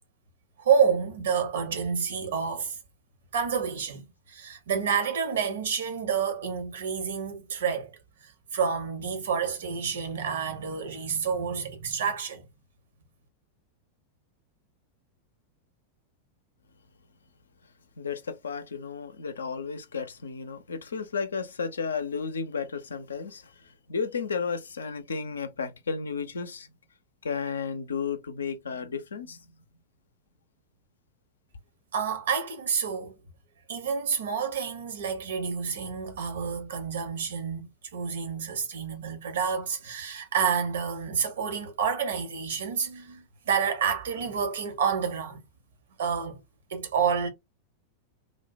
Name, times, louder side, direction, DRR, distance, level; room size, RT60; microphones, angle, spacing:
voice 1, 0.6-2.8 3.3-7.9 8.2-12.5 31.9-33.1 33.7-45.4 46.0-46.4 46.7-47.3, right 6 dB, 60° right, 0.8 m, -29 dB
voice 2, 18.0-26.7 27.2-29.4, left 5 dB, 70° left, 0.5 m, -33 dB
3.1 x 2.1 x 2.5 m
figure-of-eight pair, 90°, 0 cm